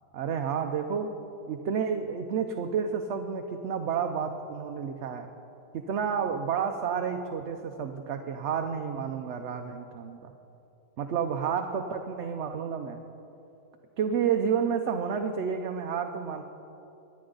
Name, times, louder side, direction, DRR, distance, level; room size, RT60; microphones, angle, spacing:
voice 1, 0.1-1.1 1.5-5.3 5.7-10.3 11.0-13.0 14.0-16.4, right 7 dB, 65° right, 5 dB, 0.9 m, -30 dB
24.0 x 9.6 x 3.9 m, 2.9 s
omnidirectional pair, 1.4 m